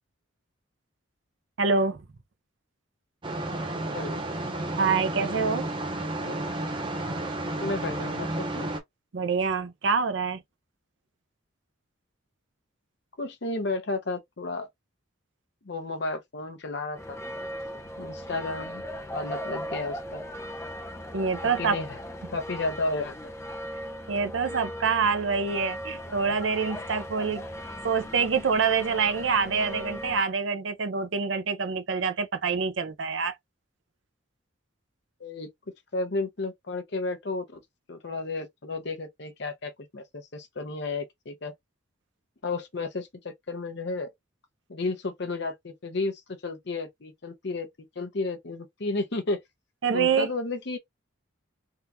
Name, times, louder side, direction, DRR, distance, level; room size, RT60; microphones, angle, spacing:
voice 1, 1.6-2.0 4.8-5.7 9.1-10.4 21.1-21.8 24.1-27.4 27.8-33.4 49.8-50.3, right 5 dB, 65° right, 0.6 m, -26 dB
sound 1, 3.2-8.8, right 1 dB, 25° right, 0.7 m, -32 dB
voice 2, 6.0-6.4 7.6-8.7 13.2-14.7 15.7-17.2 18.0-18.8 19.1-20.2 21.4-21.9 22.3-23.3 23.7-23.8 35.2-35.5 35.9-37.6 37.9-41.5 42.4-44.1 44.7-47.7 48.0-49.4 49.9-50.8, left 3 dB, 55° left, 0.7 m, -32 dB
sound 2, 16.9-30.2, equal, 15° left, 0.4 m, -38 dB
3.6 x 2.4 x 2.8 m
head